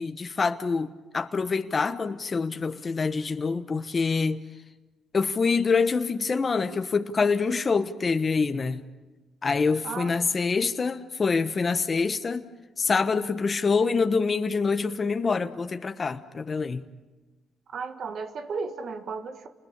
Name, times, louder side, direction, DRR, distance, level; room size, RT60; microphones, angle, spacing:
voice 1, 0.0-4.4 5.1-8.8 9.4-12.5 12.8-16.8, left 4 dB, 35° left, 1.2 m, -26 dB
voice 2, 9.8-10.2 17.7-19.5, right 4 dB, 60° right, 1.7 m, -34 dB
29.5 x 21.0 x 8.7 m
cardioid pair, 90°, 0 cm